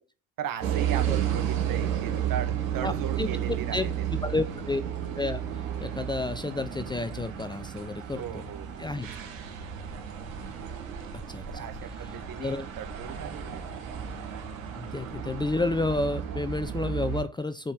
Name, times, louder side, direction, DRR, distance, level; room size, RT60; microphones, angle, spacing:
voice 1, 0.4-4.2 8.1-8.9 11.4-13.7, right 10 dB, 55° right, 8 dB, 2.1 m, -37 dB
sound 1, 0.6-17.2, right 9 dB, 80° right, 2.7 m, -33 dB
voice 2, 3.2-3.9 4.2-4.9 5.2-5.4 5.8-8.2 8.8-9.1 11.3-11.4 12.4-12.7 14.7-17.7, left 2 dB, 10° left, 13 dB, 0.7 m, -30 dB
7.7 x 5.3 x 7.3 m, 0.34 s
hypercardioid pair, 70°, 40 cm